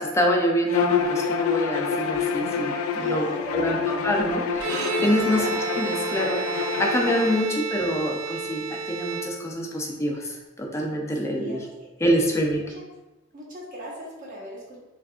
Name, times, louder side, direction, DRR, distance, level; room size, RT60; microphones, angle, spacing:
voice 1, 0.0-5.5 5.8-11.6 12.0-12.6, equal, 15° left, 0 dB, 0.5 m, -26 dB
Bowed string instrument, 0.7-7.4, left 6 dB, 75° left, 0.3 m, -27 dB
voice 2, 3.0-4.1 5.1-5.6 11.3-11.9 12.7-12.8 13.3-14.8, right 1 dB, 40° right, -5 dB, 1.2 m, -38 dB
Bowed string instrument 2, 4.5-9.8, right 4 dB, 90° right, 0.5 m, -31 dB
5.9 x 2.5 x 2.4 m, 1.1 s
head